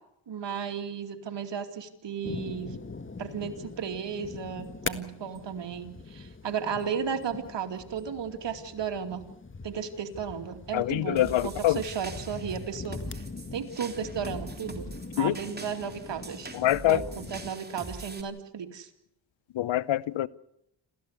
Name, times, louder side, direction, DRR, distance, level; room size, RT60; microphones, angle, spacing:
voice 1, 0.3-2.8 3.2-9.2 9.6-13.2 13.5-14.9 15.2-16.5 16.9-18.9, right 7 dB, 65° right, 2.7 m, -34 dB
sound 1, 2.2-17.5, left 4 dB, 25° left, 1.6 m, -42 dB
voice 2, 10.7-11.8 15.2-15.3 16.5-17.0 19.5-20.3, left 14 dB, 80° left, 0.8 m, -25 dB
sound 2, 11.2-18.2, right 2 dB, 20° right, 3.1 m, -43 dB
27.5 x 15.0 x 8.3 m
cardioid pair, 65°, 46 cm